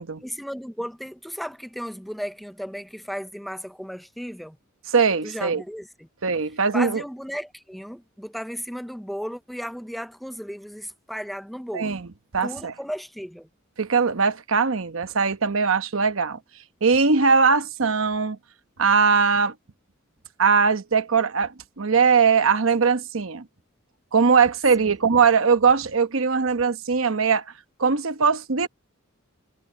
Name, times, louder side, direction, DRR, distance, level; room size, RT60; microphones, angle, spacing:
voice 1, 0.2-4.6 5.2-6.1 6.7-12.0 12.4-13.5 24.8-24.9, equal, ahead, 0.5 m, -35 dB
voice 2, 4.9-5.6 6.2-7.0 11.7-12.1 12.3-12.7 13.8-16.4 16.8-18.4 18.8-19.5 20.4-23.5 24.1-27.4 27.8-28.7, right 5 dB, 70° right, 1.0 m, -20 dB
head